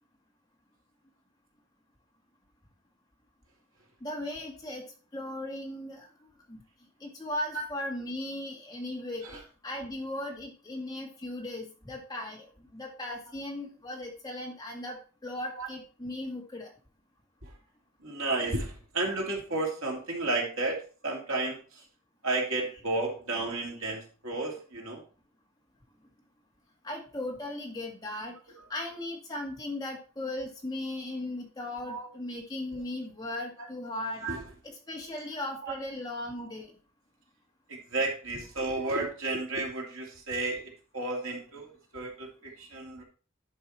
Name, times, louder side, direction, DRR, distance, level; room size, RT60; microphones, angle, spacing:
voice 1, 4.0-4.8 5.1-6.1 6.5-6.6 7.0-9.2 9.6-16.7 26.8-28.4 28.7-34.2 34.9-36.7, left 1 dB, 20° left, -1 dB, 2.0 m, -37 dB
voice 2, 18.0-21.8 22.2-25.0 28.6-28.7 31.9-32.1 32.7-32.8 33.6-33.7 34.2-34.5 35.6-35.7 36.4-36.5 37.7-43.0, right 2 dB, 70° right, -1 dB, 2.7 m, -33 dB
11.0 x 5.2 x 4.4 m, 0.37 s
head